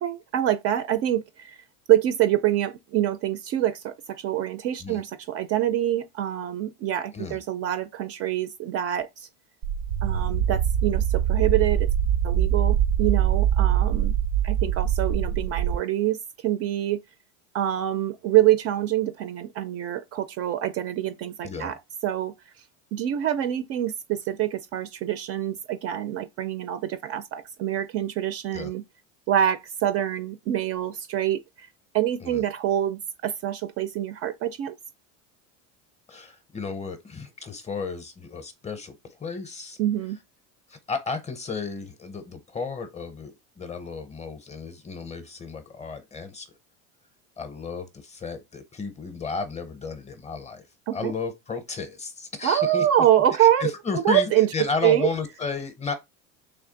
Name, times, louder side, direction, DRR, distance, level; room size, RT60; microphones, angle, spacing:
voice 1, 0.0-1.6 1.9-9.3 10.0-11.9 12.2-14.1 14.4-17.0 17.5-21.7 22.0-22.3 22.9-28.8 29.3-31.7 31.9-34.8 39.8-40.2 50.9-51.1 52.4-54.5 54.8-55.1, right 12 dB, 40° right, 0.4 m, -25 dB
sound 1, 9.6-15.8, right 9 dB, 85° right, 0.8 m, -23 dB
voice 2, 36.1-39.8 40.7-46.5 47.4-50.6 50.9-52.9 53.4-56.0, left 4 dB, 20° left, 0.6 m, -33 dB
3.4 x 3.1 x 3.8 m
cardioid pair, 140°, 38 cm